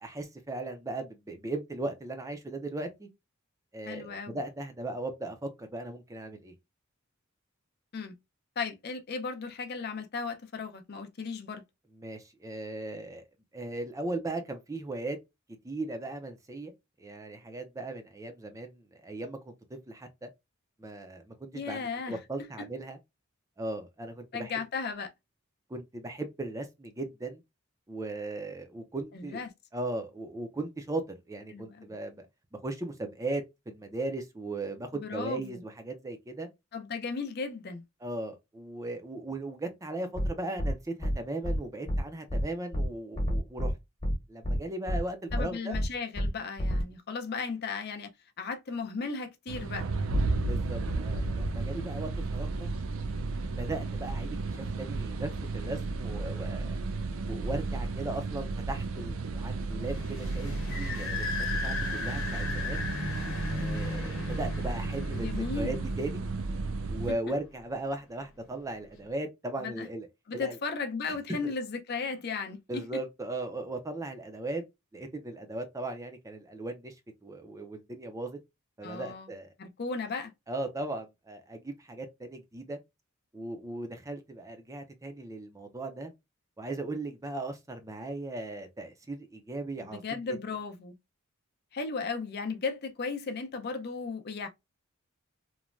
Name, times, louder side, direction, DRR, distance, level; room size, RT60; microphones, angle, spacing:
voice 1, 0.0-3.1 3.7-6.5 12.0-13.2 13.5-15.2 15.6-16.7 17.0-20.3 20.8-23.0 23.6-24.5 25.7-27.4 27.9-29.4 29.7-32.2 32.5-36.5 38.0-43.7 44.3-45.8 50.4-52.7 53.5-56.8 57.3-62.8 63.5-66.2 66.9-70.1 70.3-70.6 71.1-71.2 71.4-71.5 72.7-74.6 74.9-77.0 77.2-78.4 78.8-79.5 80.5-82.8 83.3-86.1 86.6-90.4, right 2 dB, 15° right, 0.4 m, -37 dB
voice 2, 3.9-4.4 7.9-8.1 8.6-11.6 21.5-22.2 22.6-22.7 24.3-25.1 29.1-29.5 31.5-31.9 34.9-35.6 36.7-37.8 45.3-48.1 48.4-49.9 65.1-65.9 67.1-67.2 69.6-69.9 70.3-72.9 78.8-79.3 79.6-80.3 89.8-91.0 91.7-94.5, left 4 dB, 50° left, 0.5 m, -35 dB
sound 1, 40.2-40.3 40.6-40.7 41.0-41.1 41.4-41.6 41.9-42.0 42.3-42.4 42.7-42.9 43.2-43.7 44.0-44.1 44.4-44.6 44.9-45.0 45.3-45.4 45.7-45.9 46.2-46.3 46.6-46.8, equal, 25° left, 1.0 m, -28 dB
sound 2, 49.5-67.1, right 3 dB, 80° right, 0.5 m, -33 dB
sound 3, 59.9-67.2, left 3 dB, 80° left, 0.9 m, -37 dB
3.1 x 2.1 x 2.4 m
head